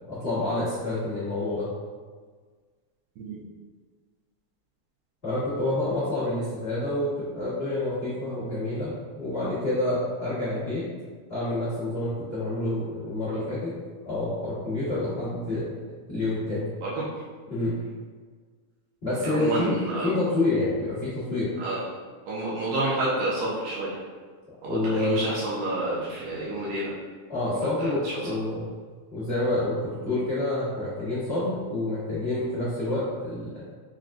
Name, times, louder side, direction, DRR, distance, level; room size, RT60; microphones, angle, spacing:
voice 1, 0.1-1.7 5.2-10.9 11.3-13.7 14.0-15.7 16.1-16.7 17.5-17.8 19.0-19.8 20.0-21.5 24.6-25.2 27.3-28.7 29.1-33.6, left 2 dB, 65° left, -12 dB, 0.5 m, -28 dB
voice 2, 19.2-20.1 21.6-21.8 22.3-23.9 24.6-26.9 27.8-28.4, right 2 dB, 80° right, -7 dB, 2.3 m, -29 dB
6.0 x 2.3 x 2.4 m, 1.5 s
omnidirectional pair, 3.9 m